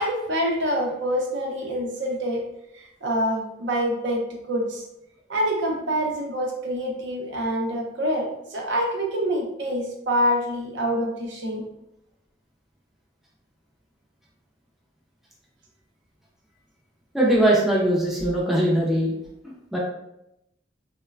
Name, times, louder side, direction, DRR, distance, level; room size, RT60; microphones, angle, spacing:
voice 1, 0.0-2.4 2.7-4.2 4.5-4.8 5.3-11.6, equal, 65° right, -1 dB, 0.6 m, -26 dB
voice 2, 17.1-19.1 19.7-19.8, right 1 dB, ahead, -5 dB, 0.4 m, -20 dB
3.0 x 2.1 x 2.3 m, 0.83 s
head